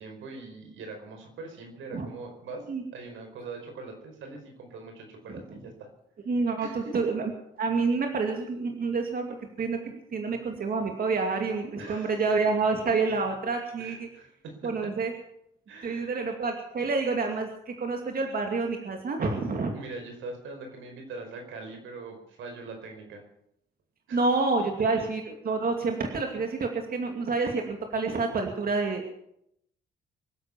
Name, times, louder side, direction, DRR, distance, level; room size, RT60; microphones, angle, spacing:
voice 1, 0.0-2.7 2.9-5.9 6.6-6.9 11.8-12.1 13.8-14.7 15.7-16.2 19.7-23.2 24.1-24.2, right 3 dB, 80° right, 3 dB, 5.1 m, -42 dB
voice 2, 5.3-5.6 6.3-7.3 7.6-9.3 9.6-14.1 14.6-15.1 15.8-19.7 24.1-29.1, right 4 dB, 45° right, 3 dB, 2.5 m, -28 dB
24.0 x 8.1 x 7.2 m, 0.77 s
cardioid pair, 90°, 20 cm